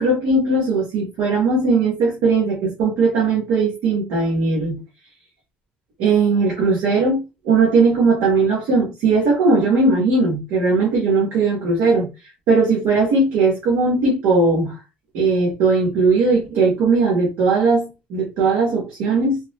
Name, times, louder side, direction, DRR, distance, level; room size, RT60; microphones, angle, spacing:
voice 1, 0.0-4.8 6.0-12.1 12.5-14.8 15.1-19.4, right 3 dB, 85° right, 1.3 m, -18 dB
3.5 x 2.1 x 3.1 m
cardioid pair, 135°, 4 cm